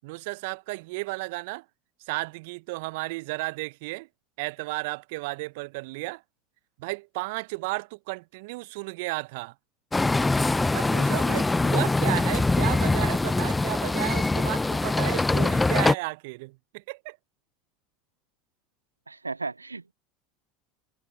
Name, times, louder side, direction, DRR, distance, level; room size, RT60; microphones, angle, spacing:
voice 1, 0.0-1.6 2.1-4.1 4.4-6.2 6.8-9.5 10.7-17.2, right 24 dB, 60° right, 0.9 m, -33 dB
sound 1, 9.9-15.9, left 2 dB, 10° left, 0.7 m, -23 dB
voice 2, 19.1-19.9, right 3 dB, 90° right, 0.4 m, -35 dB
figure-of-eight pair, 75°, 0 cm